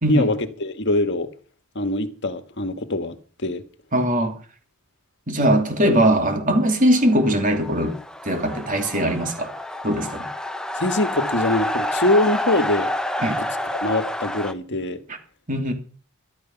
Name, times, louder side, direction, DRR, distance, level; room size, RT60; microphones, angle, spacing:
voice 1, 0.1-1.3 1.7-3.6 10.8-12.9 13.3-15.0, left 1 dB, 55° left, 1.6 m, -23 dB
voice 2, 3.9-4.3 5.3-7.9 8.2-9.5 9.8-10.2 13.2-13.4 15.5-15.7, right 1 dB, 35° right, 2.8 m, -20 dB
sound 1, 6.8-14.5, left 1 dB, 5° left, 0.9 m, -28 dB
13.5 x 12.5 x 5.8 m
head